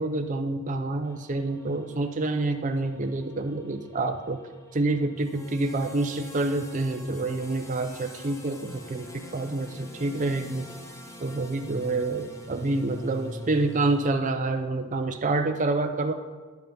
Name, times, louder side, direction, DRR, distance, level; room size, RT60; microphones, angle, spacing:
voice 1, 0.0-4.4 4.7-10.7 11.2-16.1, right 2 dB, 35° right, 5 dB, 0.5 m, -27 dB
sound 1, 1.0-14.1, left 1 dB, 15° left, 0.8 m, -45 dB
10.5 x 5.6 x 5.3 m, 1.5 s
head